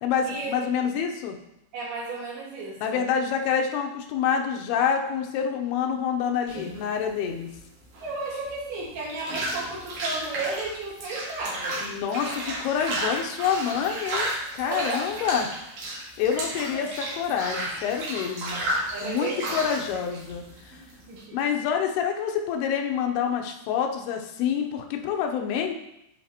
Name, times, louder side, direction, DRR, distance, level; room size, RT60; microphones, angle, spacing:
voice 1, 0.0-1.4 2.8-7.5 11.8-15.5 15.9-18.6 19.0-20.8 21.3-25.7, left 7 dB, 80° left, 3 dB, 2.6 m, -27 dB
voice 2, 1.7-3.0 8.0-11.8 14.7-15.0 16.4-16.9 18.9-19.6 20.7-20.8 21.1-21.4, right 3 dB, 75° right, -4 dB, 3.5 m, -34 dB
sound 1, 6.5-21.2, right 1 dB, 60° right, 2.6 m, -33 dB
10.5 x 4.2 x 2.8 m, 0.83 s
omnidirectional pair, 4.6 m